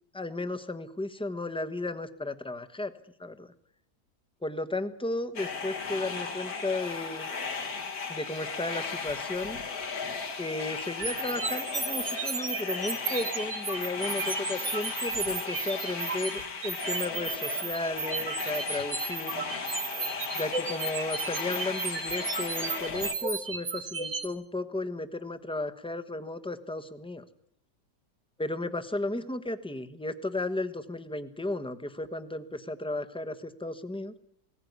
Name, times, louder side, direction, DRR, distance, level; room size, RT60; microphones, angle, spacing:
voice 1, 0.1-2.9 3.2-3.5 4.4-7.3 8.1-9.6 10.4-19.4 20.3-27.2 28.4-34.1, left 2 dB, 5° left, 10 dB, 1.0 m, -34 dB
sound 1, 5.4-23.1, left 5 dB, 60° left, 2.0 m, -36 dB
sound 2, 11.0-24.3, right 4 dB, 45° right, 1.9 m, -34 dB
20.0 x 17.5 x 9.5 m, 0.68 s
omnidirectional pair, 1.9 m